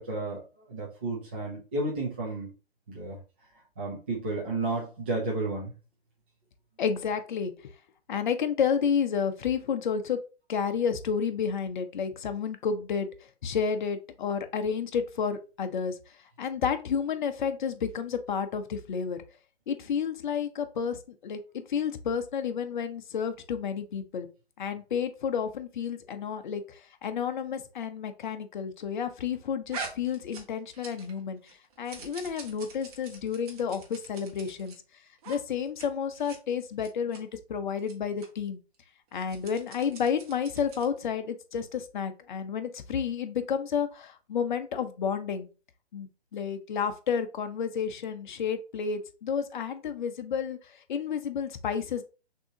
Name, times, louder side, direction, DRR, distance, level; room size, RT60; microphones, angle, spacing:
voice 1, 0.0-2.5 2.9-3.2 3.8-5.7, right 2 dB, 10° right, -6 dB, 0.4 m, -32 dB
voice 2, 6.8-7.7 8.1-10.2 10.5-13.1 13.4-19.2 19.7-24.3 24.6-34.7 35.3-38.6 39.1-45.5 45.9-52.0, left 7 dB, 50° left, 8 dB, 0.7 m, -31 dB
sound 1, 29.7-31.2 31.5-34.8 35.2-35.4 35.7-35.9 36.1-36.4 36.8-37.2 37.8-37.9 38.2-38.3 39.1-41.0, right 4 dB, 35° right, 1.1 m, -44 dB
6.1 x 2.8 x 2.7 m, 0.33 s
hypercardioid pair, 145°, 32 cm